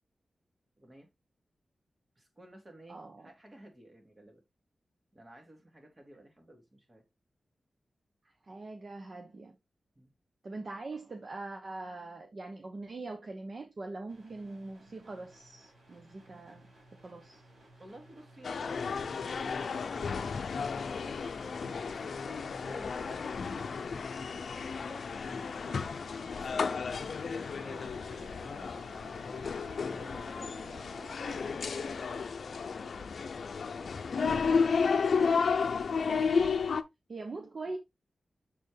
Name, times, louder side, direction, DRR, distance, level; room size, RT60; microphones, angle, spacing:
voice 1, 0.8-1.1 2.2-4.4 5.1-7.0 10.0-10.1 17.8-20.3 20.8-26.9 27.2-31.9 32.4-34.4 35.0-35.4, right 1 dB, 30° right, 2.5 m, -54 dB
voice 2, 2.9-3.3 8.4-9.5 10.4-16.7 17.0-17.4 36.3-36.6 37.1-37.8, right 3 dB, 50° right, 1.0 m, -42 dB
sound 1, 14.1-32.2, right 2 dB, 80° right, 4.4 m, -56 dB
sound 2, 18.4-36.8, left 5 dB, 75° left, 0.5 m, -32 dB
7.0 x 4.4 x 3.3 m
wide cardioid pair, 95°, 0 cm